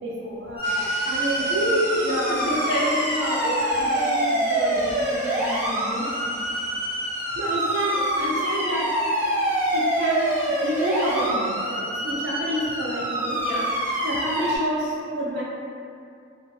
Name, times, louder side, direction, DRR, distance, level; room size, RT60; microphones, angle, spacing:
voice 1, 0.0-2.5 7.3-9.0 9.7-10.3 10.6-13.4 14.0-15.4, equal, 75° right, -5 dB, 0.4 m, -28 dB
sound 1, 0.6-14.3, equal, 25° left, 1.3 m, -43 dB
sound 2, 0.6-14.6, right 1 dB, 10° right, 0.6 m, -25 dB
voice 2, 2.0-6.1 13.4-14.0, equal, 85° left, -7 dB, 0.7 m, -30 dB
2.6 x 2.1 x 2.3 m, 2.5 s
head